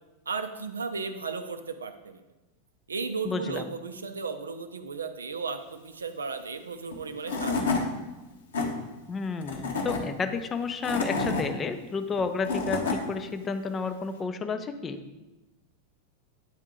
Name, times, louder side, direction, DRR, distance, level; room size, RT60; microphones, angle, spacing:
voice 1, 0.3-2.2 2.9-7.6, right 4 dB, 75° right, 9 dB, 0.4 m, -35 dB
voice 2, 3.2-3.6 9.1-15.0, left 4 dB, 20° left, 8 dB, 0.5 m, -31 dB
Tools / Wood, 6.9-7.0 7.3-7.8 8.3-8.7 9.4-10.0 10.6-11.4 12.2-13.0, left 4 dB, 65° left, 1.0 m, -28 dB
8.8 x 3.6 x 3.7 m, 1.1 s
figure-of-eight pair, 90°, 0 cm